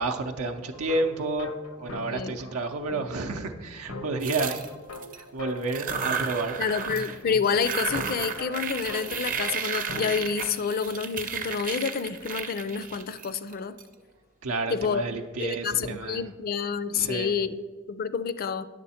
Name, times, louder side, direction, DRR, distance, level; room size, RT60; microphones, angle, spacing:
voice 1, 0.0-1.5 1.8-4.6 5.1-6.6 14.4-16.2 16.9-17.3, right 3 dB, 85° right, 4 dB, 0.6 m, -30 dB
sound 1, 0.7-10.6, left 2 dB, 80° left, 0.7 m, -42 dB
sound 2, 4.2-5.2 5.6-7.2 7.4-13.8, right 6 dB, 40° right, 0.6 m, -33 dB
voice 2, 6.6-13.8 14.7-15.0 15.3-18.6, left 6 dB, 45° left, 14 dB, 0.4 m, -28 dB
9.8 x 6.9 x 4.2 m, 1.4 s
head